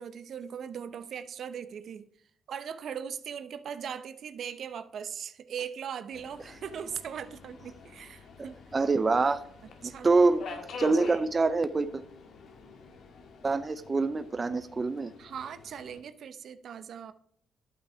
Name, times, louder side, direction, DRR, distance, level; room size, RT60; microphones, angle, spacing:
voice 1, 0.0-2.0 2.5-8.6 9.8-10.2 15.2-17.1, right 8 dB, 60° right, 0.9 m, -39 dB
Subway metro underground, 6.1-16.0, left 4 dB, 65° left, 2.0 m, -47 dB
voice 2, 8.7-9.4 9.8-12.0 13.4-15.1, right 3 dB, 30° right, 0.6 m, -26 dB
12.0 x 8.3 x 4.5 m
cardioid pair, 90°, 0 cm